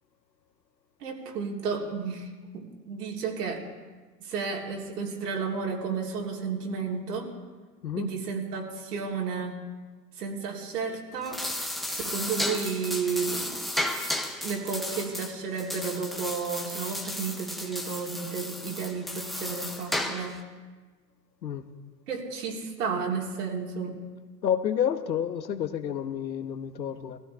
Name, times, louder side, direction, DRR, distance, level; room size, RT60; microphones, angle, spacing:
voice 1, 1.0-2.3 2.5-3.6 4.2-7.3 8.0-9.6 10.2-11.4 11.9-13.6 14.4-20.4 22.1-23.9, right 5 dB, 65° right, -1 dB, 3.4 m, -32 dB
voice 2, 7.8-8.1 21.4-21.6 24.4-27.2, left 9 dB, 85° left, 9 dB, 1.1 m, -29 dB
sound 1, 11.1-20.4, left 1 dB, ahead, 0.5 m, -34 dB
20.5 x 15.0 x 3.4 m, 1.3 s
hypercardioid pair, 120°, 50 cm